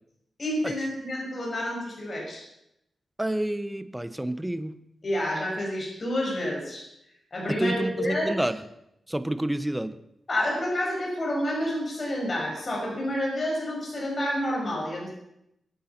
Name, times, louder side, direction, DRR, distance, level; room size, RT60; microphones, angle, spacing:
voice 1, 0.4-2.4 5.0-6.9 7.3-8.4 10.3-15.1, left 1 dB, 35° left, -2 dB, 6.2 m, -29 dB
voice 2, 3.2-4.8 7.5-8.6 9.1-10.0, right 1 dB, 10° right, 12 dB, 0.9 m, -29 dB
23.0 x 9.3 x 6.0 m, 0.81 s
wide cardioid pair, 130°, 0 cm